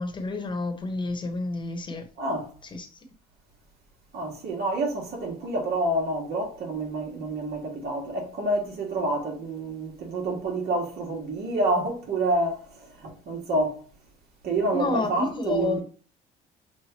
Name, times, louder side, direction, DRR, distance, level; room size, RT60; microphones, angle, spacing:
voice 1, 0.0-2.0 2.7-3.0 14.7-15.8, left 2 dB, 30° left, 1.1 m, -29 dB
voice 2, 2.2-2.5 4.1-13.8 14.4-15.8, right 2 dB, 70° right, 1.7 m, -28 dB
5.9 x 2.5 x 2.9 m
cardioid pair, 110°, 17 cm